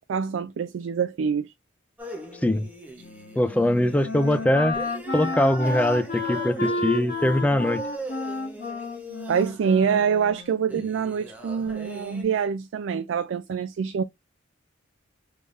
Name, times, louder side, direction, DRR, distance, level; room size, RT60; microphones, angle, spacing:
voice 1, 0.1-1.5 9.3-14.0, right 6 dB, 75° right, 0.3 m, -25 dB
sound 1, 2.0-12.2, right 1 dB, 10° right, 0.8 m, -40 dB
Wind instrument woodwind instrument, 3.0-10.8, left 2 dB, 50° left, 1.5 m, -32 dB
voice 2, 3.4-4.8 5.1-7.8, left 1 dB, 5° left, 0.3 m, -22 dB
3.4 x 3.4 x 2.5 m
head